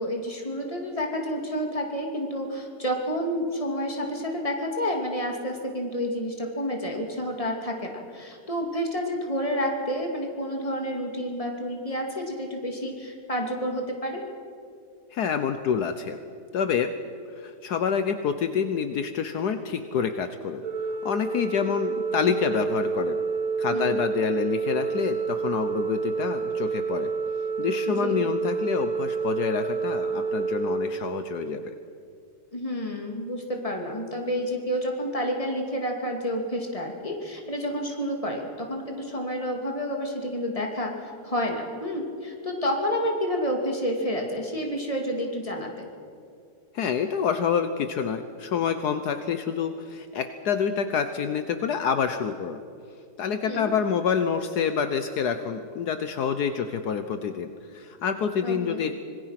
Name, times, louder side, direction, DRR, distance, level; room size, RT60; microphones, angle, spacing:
voice 1, 0.0-14.2 23.7-24.0 27.9-28.2 32.5-45.9 53.4-53.7 58.4-58.8, equal, 20° left, 2 dB, 2.7 m, -29 dB
voice 2, 15.1-16.2 16.5-16.9 17.4-20.6 20.9-23.2 23.6-27.1 27.6-31.7 46.7-52.6 53.2-58.9, left 7 dB, 70° left, 9 dB, 1.4 m, -27 dB
Organ, 20.6-31.7, right 5 dB, 55° right, 1.6 m, -29 dB
26.0 x 20.5 x 5.9 m, 2.4 s
omnidirectional pair, 1.8 m